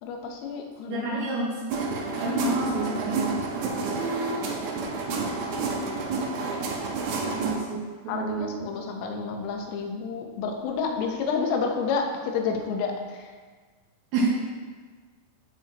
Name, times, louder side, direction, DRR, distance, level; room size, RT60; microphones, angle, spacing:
voice 1, 0.0-1.2 2.6-3.7 8.1-13.3, left 5 dB, 85° left, 2 dB, 3.6 m, -30 dB
voice 2, 0.9-1.6 2.2-3.3 7.3-8.7 14.1-14.3, right 3 dB, 70° right, -4 dB, 3.6 m, -28 dB
sound 1, 1.7-7.6, right 3 dB, 85° right, 2.1 m, -29 dB
13.0 x 7.3 x 3.0 m, 1.5 s
omnidirectional pair, 5.9 m